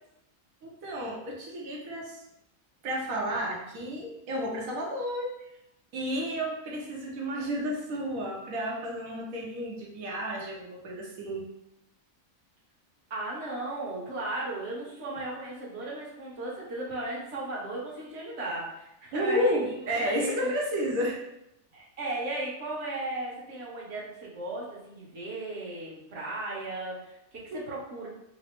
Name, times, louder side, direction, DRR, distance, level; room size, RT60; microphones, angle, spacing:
voice 1, 0.6-2.2 2.8-5.3 5.9-11.4 19.1-21.2 27.5-27.6, equal, 90° right, -2 dB, 1.2 m, -31 dB
voice 2, 13.1-20.6 21.7-28.1, right 2 dB, 55° right, -5 dB, 1.4 m, -36 dB
4.0 x 2.0 x 4.3 m, 0.83 s
omnidirectional pair, 1.4 m